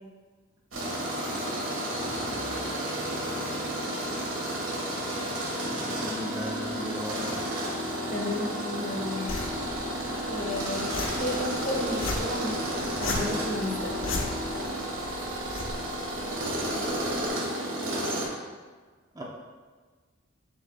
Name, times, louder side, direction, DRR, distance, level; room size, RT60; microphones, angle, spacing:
Tools, 0.7-18.3, right 1 dB, 75° right, 1.5 m, -32 dB
Musical instrument, 2.0-10.5, left 1 dB, 40° right, 1.7 m, -51 dB
voice 1, 5.7-7.4 19.1-19.2, equal, 20° right, -3 dB, 0.7 m, -37 dB
voice 2, 8.1-9.3 10.3-14.2, left 1 dB, 40° left, -1 dB, 1.1 m, -33 dB
sound 1, 9.3-17.3, left 2 dB, 75° left, 0.8 m, -38 dB
7.3 x 6.8 x 2.2 m, 1.4 s
head